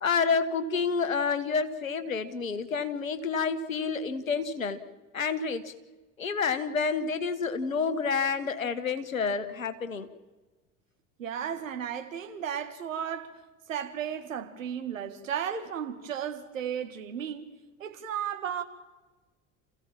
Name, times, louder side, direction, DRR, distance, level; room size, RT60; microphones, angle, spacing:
voice 1, 0.0-4.8 5.1-5.7 6.2-10.1, left 5 dB, 80° left, 1.5 m, -29 dB
voice 2, 11.2-13.4 13.7-17.5 17.8-18.6, right 8 dB, 75° right, 1.9 m, -34 dB
28.0 x 16.0 x 7.5 m
figure-of-eight pair, 65°, 40 cm